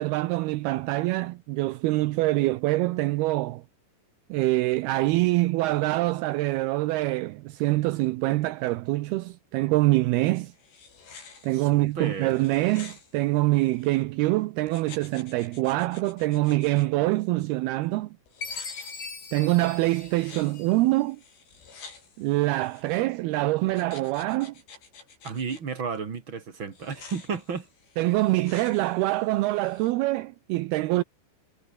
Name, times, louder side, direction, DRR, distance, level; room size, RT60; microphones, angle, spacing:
voice 1, 0.0-3.6 4.3-10.5 11.4-18.1 19.3-21.2 22.2-24.5 28.0-31.0, right 19 dB, 80° right, 2.3 m, -25 dB
sound 1, 10.4-14.0 14.7-16.9 18.3-23.0 23.7-25.6 26.7-29.9, left 5 dB, 65° left, 9.0 m, -50 dB
voice 2, 11.5-12.4 25.2-27.7, right 5 dB, 35° right, 2.3 m, -33 dB
Chime, 18.4-21.0, left 4 dB, 40° left, 6.1 m, -40 dB
omnidirectional pair, 5.3 m